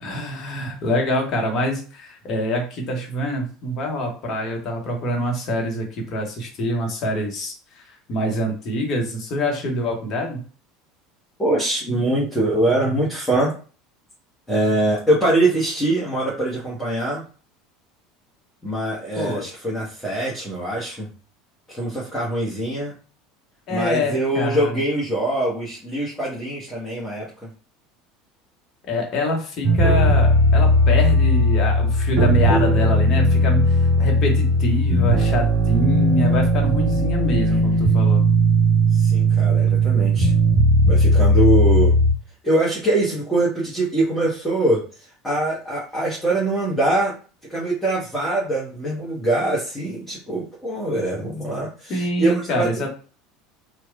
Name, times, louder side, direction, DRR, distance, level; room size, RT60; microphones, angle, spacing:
voice 1, 0.0-10.4 19.2-19.4 23.7-24.8 28.8-38.2 51.9-52.9, left 1 dB, 45° left, 2 dB, 1.0 m, -25 dB
voice 2, 11.4-13.5 14.5-17.2 18.6-21.1 21.7-22.9 23.7-27.3 39.0-40.3 40.9-41.9 42.4-44.8 45.2-47.1 47.5-52.7, right 1 dB, 10° left, -7 dB, 1.1 m, -23 dB
sound 1, 29.6-42.1, equal, 50° right, 0.7 m, -17 dB
2.9 x 2.2 x 2.5 m, 0.37 s
figure-of-eight pair, 70°, 0 cm